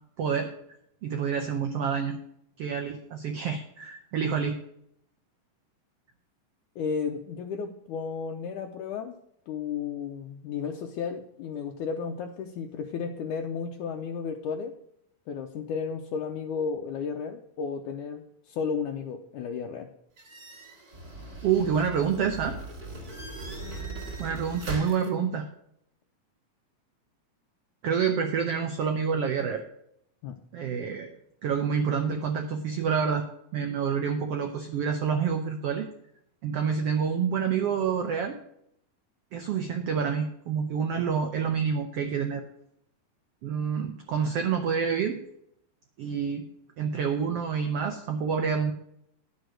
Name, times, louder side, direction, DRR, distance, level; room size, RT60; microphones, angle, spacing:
voice 1, 0.2-0.5 1.0-2.2 2.6-4.6 21.4-22.6 24.2-25.5 27.8-29.6 30.5-31.1 31.4-33.2 33.5-35.9 36.4-38.4 39.3-42.4 43.4-45.2 46.0-46.5 46.8-48.7, right 6 dB, 85° right, 5 dB, 1.3 m, -28 dB
voice 2, 6.8-9.1 9.5-14.7 15.3-19.9 30.2-30.3, left 6 dB, 75° left, 3 dB, 2.0 m, -33 dB
sound 1, 20.2-25.1, right 1 dB, 25° right, 2.9 m, -39 dB
11.0 x 6.3 x 6.4 m, 0.73 s
omnidirectional pair, 4.0 m